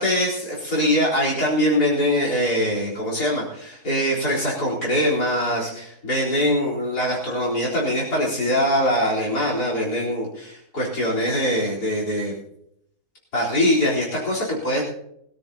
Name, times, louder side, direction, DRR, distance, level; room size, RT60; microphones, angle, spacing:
voice 1, 0.0-12.3 13.3-14.8, equal, 90° left, -4 dB, 4.5 m, -23 dB
23.0 x 13.5 x 2.8 m, 0.73 s
omnidirectional pair, 1.6 m